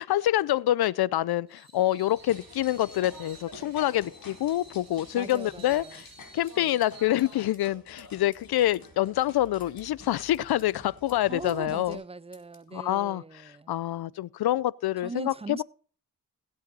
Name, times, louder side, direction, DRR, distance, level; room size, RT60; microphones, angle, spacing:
voice 1, 0.0-6.1 6.3-12.0 12.7-15.6, left 13 dB, 80° left, 0.5 m, -26 dB
Screech, 1.5-7.5, right 3 dB, 45° right, 4.5 m, -53 dB
sound 1, 2.1-11.9, left 3 dB, 65° left, 4.0 m, -49 dB
voice 2, 5.1-6.0 6.6-6.7 11.3-13.8 15.0-15.6, right 3 dB, 15° right, 0.6 m, -40 dB
sound 2, 5.3-11.7 11.9-12.7, left 2 dB, 20° left, 3.3 m, -61 dB
16.5 x 8.6 x 4.1 m
cardioid pair, 70°, 37 cm